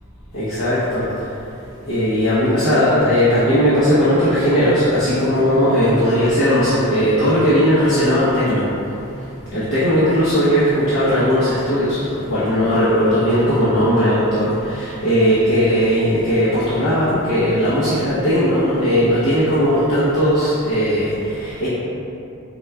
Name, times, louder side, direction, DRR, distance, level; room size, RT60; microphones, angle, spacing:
voice 1, 0.3-1.1 1.9-8.6 9.5-21.7, equal, 80° left, -13 dB, 1.0 m, -17 dB
4.4 x 4.0 x 2.3 m, 2.8 s
head